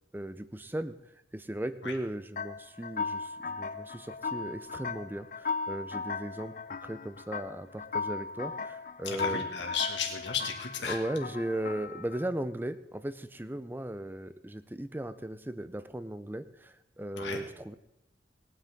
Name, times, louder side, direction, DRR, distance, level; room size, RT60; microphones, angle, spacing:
voice 1, 0.1-1.0 1.3-6.5 6.8-9.8 10.9-17.7, right 1 dB, 10° right, 12 dB, 0.6 m, -37 dB
sound 1, 2.4-12.3, left 4 dB, 45° left, 0.5 m, -37 dB
voice 2, 9.1-11.0 17.2-17.4, left 6 dB, 80° left, 1 dB, 1.9 m, -34 dB
20.5 x 9.2 x 3.6 m, 0.85 s
head